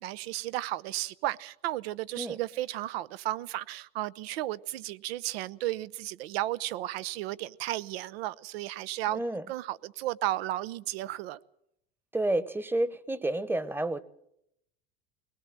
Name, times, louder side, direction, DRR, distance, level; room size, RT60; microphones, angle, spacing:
voice 1, 0.0-9.2 9.5-11.4, right 15 dB, 80° right, 0.8 m, -34 dB
voice 2, 9.1-9.5 12.1-14.0, right 1 dB, 5° right, 1.0 m, -30 dB
22.0 x 19.5 x 7.6 m
supercardioid pair, 105°, 30 cm